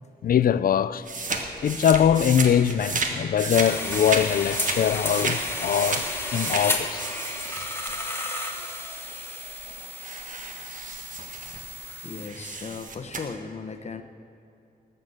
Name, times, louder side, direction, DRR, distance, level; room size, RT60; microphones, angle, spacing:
voice 1, 0.2-1.0 1.6-7.1, left 9 dB, 65° left, 0.4 m, -22 dB
sound 1, 1.0-3.1 3.4-7.9 9.1-9.2 9.5-11.8 12.2-13.2, right 4 dB, 50° right, 1.4 m, -32 dB
sound 2, 3.5-12.3, left 2 dB, 15° left, 1.5 m, -33 dB
voice 2, 12.0-14.0, left 5 dB, 45° left, 0.9 m, -36 dB
19.0 x 6.8 x 7.8 m
wide cardioid pair, 160°, 16 cm